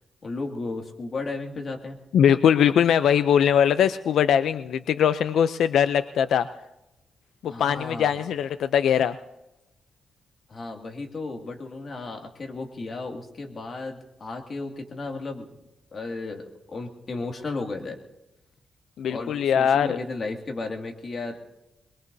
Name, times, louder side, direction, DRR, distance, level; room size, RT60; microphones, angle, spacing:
voice 1, 0.2-2.0 7.5-8.2 10.5-15.5 15.9-18.0 19.1-21.4, left 3 dB, 40° left, 2 dB, 2.3 m, -34 dB
voice 2, 2.1-6.5 7.4-9.2 19.0-20.0, left 8 dB, 85° left, 11 dB, 0.5 m, -21 dB
23.0 x 22.0 x 2.7 m, 0.94 s
cardioid pair, 125°, 0 cm